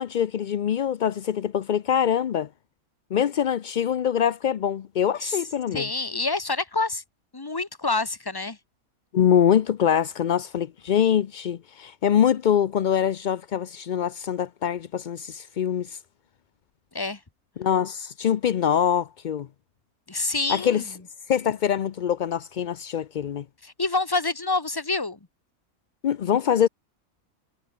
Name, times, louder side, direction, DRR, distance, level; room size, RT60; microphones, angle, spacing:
voice 1, 0.0-2.5 3.1-5.9 9.1-16.0 17.6-19.5 20.5-20.8 21.3-23.4 26.0-26.7, left 9 dB, 65° left, 0.4 m, -24 dB
voice 2, 5.7-7.0 7.3-8.6 16.9-17.2 20.1-20.9 23.6-25.2, left 3 dB, 15° left, 1.2 m, -27 dB
omnidirectional pair, 1.5 m